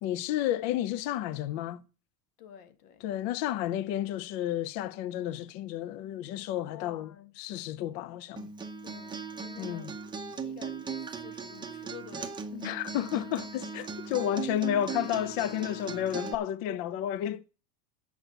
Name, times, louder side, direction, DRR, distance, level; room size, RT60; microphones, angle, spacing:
voice 1, 0.0-1.8 3.0-7.1 7.4-8.5 9.6-9.9 12.5-17.4, left 12 dB, 40° left, 0.4 m, -31 dB
voice 2, 2.4-3.0 6.7-7.3 8.8-10.0 10.3-12.9, left 9 dB, 70° left, 1.4 m, -51 dB
Acoustic guitar, 8.4-16.3, right 5 dB, 10° right, 0.6 m, -38 dB
7.9 x 6.2 x 8.0 m
supercardioid pair, 125°, 48 cm